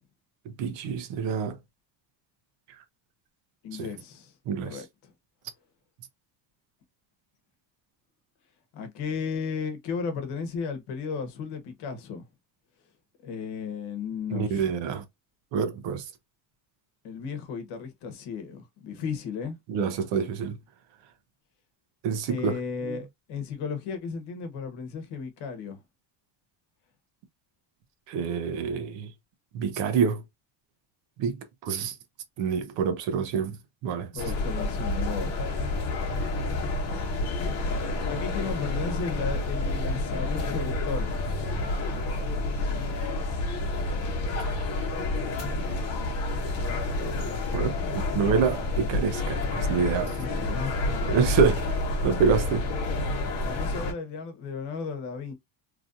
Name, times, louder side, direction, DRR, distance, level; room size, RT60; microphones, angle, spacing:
voice 1, 0.6-1.5 4.5-4.7 14.3-15.0 15.5-16.0 19.7-20.6 22.0-22.5 22.8-23.0 28.1-29.1 29.5-30.2 31.2-31.4 31.6-31.9 32.4-33.5 33.8-34.1 44.4-44.5 47.5-47.7 48.1-50.1 51.1-51.6 52.0-52.6, right 6 dB, 75° right, 0.9 m, -26 dB
voice 2, 3.6-4.3 4.6-5.1 8.7-12.2 13.2-14.8 17.0-19.6 22.3-25.8 34.1-35.4 38.0-41.6 50.0-50.7 53.4-55.3, left 5 dB, 60° left, 1.1 m, -35 dB
sound 1, 34.2-53.9, left 2 dB, 35° left, 1.1 m, -29 dB
3.1 x 2.6 x 2.5 m
cardioid pair, 165°, 45 cm